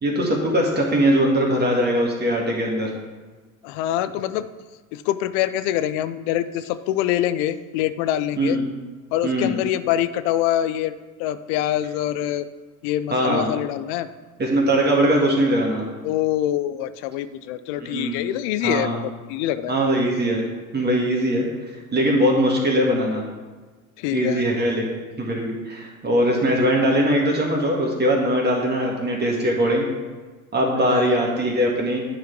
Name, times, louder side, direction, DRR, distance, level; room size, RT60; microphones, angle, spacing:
voice 1, 0.0-2.9 8.4-8.6 9.2-9.6 13.1-13.5 14.4-15.9 17.8-18.2 18.6-19.0 19.7-20.4 20.7-21.5 21.9-23.2 24.1-24.8 25.2-29.8 30.5-32.0, equal, 25° right, -1 dB, 1.7 m, -21 dB
voice 2, 3.6-4.5 4.9-8.6 9.1-12.5 12.8-14.1 16.0-19.8 24.0-24.4 30.8-31.1, left 12 dB, 55° left, 14 dB, 0.6 m, -25 dB
9.5 x 4.8 x 4.6 m, 1.3 s
hypercardioid pair, 75°, 42 cm